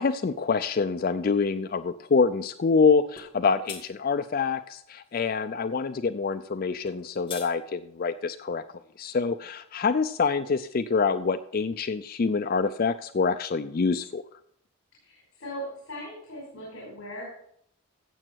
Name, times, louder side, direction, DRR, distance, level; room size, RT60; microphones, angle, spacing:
voice 1, 0.0-8.6 9.0-14.2, left 5 dB, 40° left, 10 dB, 0.4 m, -26 dB
sound 1, 3.2-3.3 3.7-3.8 6.8-7.5, left 6 dB, 25° left, 1.5 m, -40 dB
voice 2, 15.0-17.2, equal, 60° left, -4 dB, 4.9 m, -39 dB
15.0 x 7.7 x 4.5 m, 0.69 s
head